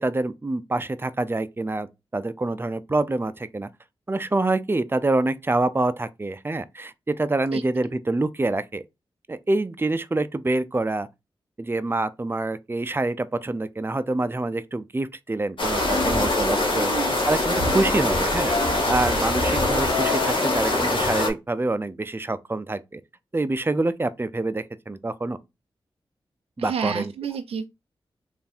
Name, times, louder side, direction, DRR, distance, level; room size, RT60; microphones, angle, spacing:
voice 1, 0.0-1.9 2.1-3.7 4.1-8.8 9.3-11.1 11.6-16.9 17.3-18.5 18.9-23.0 23.3-25.4 26.6-27.1, right 2 dB, 20° right, 0.5 m, -26 dB
sound 1, 15.6-21.3, left 1 dB, 55° left, 1.3 m, -23 dB
sound 2, 15.8-21.3, left 5 dB, 40° left, 0.5 m, -31 dB
voice 2, 16.8-17.1 26.6-27.6, right 7 dB, 85° right, 0.4 m, -30 dB
3.4 x 2.6 x 4.2 m
cardioid pair, 45°, 10 cm